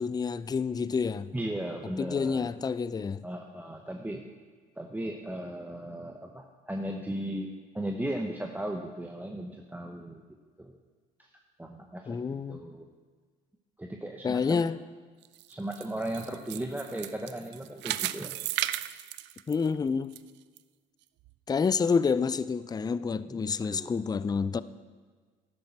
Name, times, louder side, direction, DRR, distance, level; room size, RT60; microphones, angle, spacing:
voice 1, 0.0-1.3 2.0-3.3 12.1-12.6 14.2-14.8 19.5-20.2 21.5-24.6, left 5 dB, 20° left, 0.4 m, -28 dB
voice 2, 1.3-2.5 3.2-4.3 4.8-10.2 10.6-10.7 11.2-11.3 11.6-12.9 13.8-14.7 15.5-18.3 23.3-23.9, right 1 dB, 10° right, 0.9 m, -36 dB
sound 1, 15.2-20.2 20.6-20.7 21.3-21.4, right 15 dB, 65° right, 0.4 m, -35 dB
12.0 x 9.7 x 4.5 m
hypercardioid pair, 65°, 20 cm